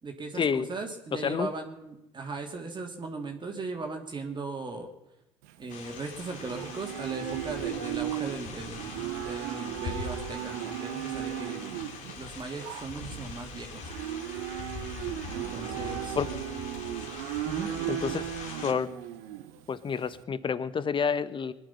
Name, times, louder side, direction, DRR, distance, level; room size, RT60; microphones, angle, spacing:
voice 1, 0.0-4.9 5.6-11.6 12.1-13.9 15.3-16.2 17.4-17.7, right 3 dB, 30° right, 3 dB, 2.6 m, -38 dB
Livestock farm animals working animals, 5.4-20.2, right 12 dB, 75° right, 1.2 m, -36 dB
sound 1, 5.7-18.7, left 5 dB, 60° left, 3.0 m, -42 dB
voice 2, 17.9-18.2 18.6-18.9 19.7-21.5, left 6 dB, 35° left, 15 dB, 1.2 m, -28 dB
22.5 x 11.0 x 5.8 m, 0.95 s
hypercardioid pair, 65°, 15 cm